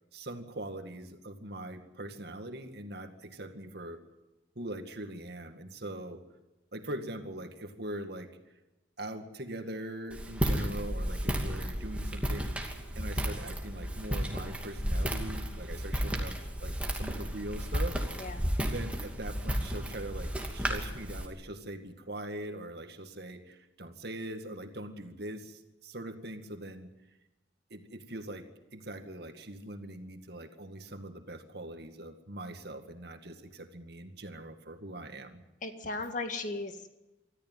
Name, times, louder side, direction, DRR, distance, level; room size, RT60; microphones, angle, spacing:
voice 1, 0.1-4.0 4.6-6.2 6.7-8.3 9.0-12.7 12.9-18.0 18.6-26.9 27.7-28.5 28.7-35.4, right 1 dB, 55° right, 7 dB, 2.1 m, -42 dB
Walk footsteps, 10.1-21.3, equal, 5° right, 2.6 m, -33 dB
voice 2, 35.6-36.9, left 3 dB, 40° left, 7 dB, 2.0 m, -36 dB
25.0 x 14.0 x 9.3 m, 1.0 s
head